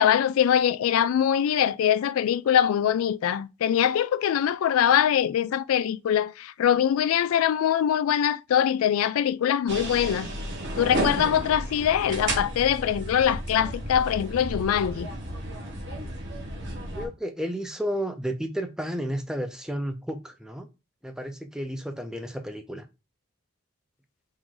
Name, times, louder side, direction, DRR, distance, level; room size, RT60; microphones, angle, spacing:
voice 1, 0.0-10.3 10.8-15.1, left 9 dB, 85° left, 0.3 m, -23 dB
sound 1, 9.7-17.1, right 1 dB, 55° right, 1.3 m, -33 dB
voice 2, 16.9-20.7 21.0-22.9, equal, 5° right, 0.5 m, -32 dB
3.8 x 2.6 x 4.7 m
head